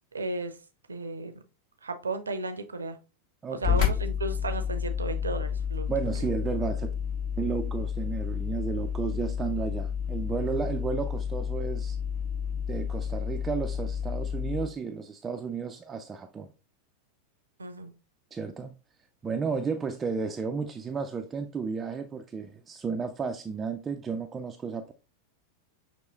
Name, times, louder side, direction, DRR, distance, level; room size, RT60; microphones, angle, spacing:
voice 1, 0.1-0.5 0.9-1.3 1.8-3.0 3.5-5.9 6.2-6.3 17.6-17.9, right 2 dB, 75° right, 0.6 m, -34 dB
voice 2, 3.4-3.9 5.9-6.9 7.4-12.0 12.5-16.5 18.3-18.7 19.2-24.9, right 5 dB, 20° right, 0.4 m, -33 dB
sound 1, 3.6-14.7, left 7 dB, 50° left, 1.4 m, -30 dB
6.2 x 2.9 x 2.9 m
figure-of-eight pair, 90°, 0 cm